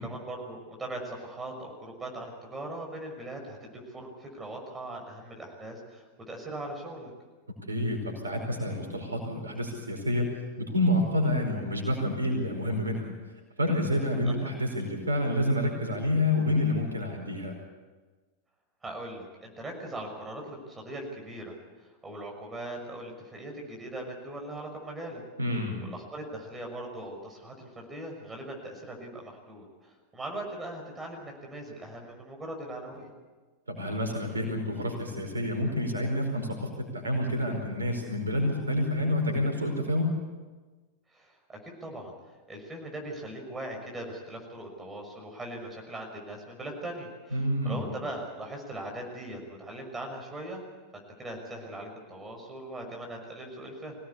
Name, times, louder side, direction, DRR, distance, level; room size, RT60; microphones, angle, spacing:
voice 1, 0.0-7.1 14.2-14.5 18.8-21.5 21.8-25.2 25.8-33.1 41.1-42.1 42.5-50.7 50.9-54.0, right 1 dB, 15° right, 1 dB, 6.1 m, -40 dB
voice 2, 7.7-10.3 10.7-13.1 13.6-17.6 25.4-25.8 33.7-40.1 47.3-47.9, left 1 dB, 75° right, 3 dB, 4.8 m, -28 dB
24.0 x 18.0 x 8.4 m, 1.3 s
figure-of-eight pair, 90°, 0 cm